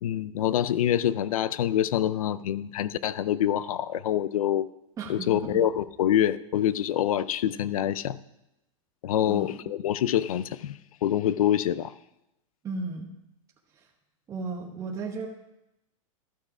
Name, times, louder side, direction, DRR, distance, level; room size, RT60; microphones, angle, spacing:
voice 1, 0.0-4.7 5.1-8.2 9.0-11.9, left 11 dB, 85° left, 17 dB, 0.5 m, -26 dB
voice 2, 5.0-5.6 9.2-9.8 12.6-13.1 13.7-13.8 14.3-15.3, right 3 dB, 20° right, 0 dB, 1.0 m, -35 dB
12.5 x 6.4 x 4.9 m, 0.89 s
supercardioid pair, 145°, 18 cm